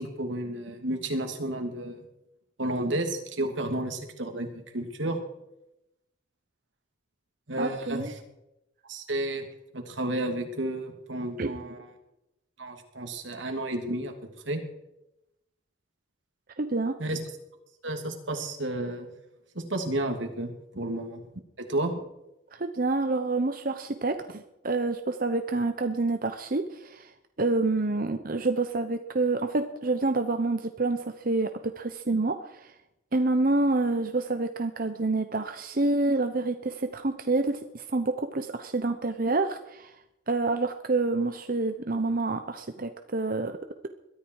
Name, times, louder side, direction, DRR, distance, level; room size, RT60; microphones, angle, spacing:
voice 1, 0.0-2.0 2.6-5.2 7.5-8.1 8.9-9.5 9.7-11.9 12.6-14.1 14.5-14.6 17.0-17.2 17.8-19.1 19.5-21.2 21.6-22.0, right 1 dB, 80° right, 4 dB, 2.9 m, -31 dB
voice 2, 7.6-8.1 11.4-11.5 16.6-17.0 22.5-27.1 27.4-32.7 33.1-39.9 40.3-43.6, right 3 dB, 50° right, 8 dB, 0.9 m, -28 dB
22.0 x 13.5 x 4.8 m, 0.89 s
head